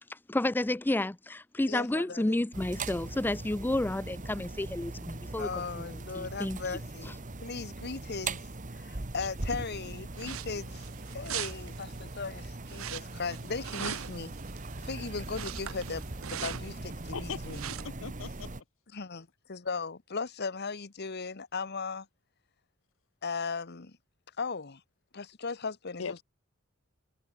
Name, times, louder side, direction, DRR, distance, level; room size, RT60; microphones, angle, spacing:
voice 1, 0.1-6.6 7.0-7.1, left 1 dB, 10° left, 0.4 m, -31 dB
voice 2, 1.7-2.4 5.4-8.4 8.7-10.9 11.1-14.3 14.8-17.6 18.9-22.1 23.2-24.0 24.4-24.8 25.1-26.2, left 4 dB, 55° left, 1.2 m, -37 dB
sound 1, 2.5-18.6, right 2 dB, 40° right, 1.4 m, -40 dB
sound 2, 10.2-17.1 17.4-17.9, right 10 dB, 90° right, 0.7 m, -41 dB
voice 3, 17.1-18.5 26.0-26.2, left 6 dB, 70° left, 0.7 m, -40 dB
head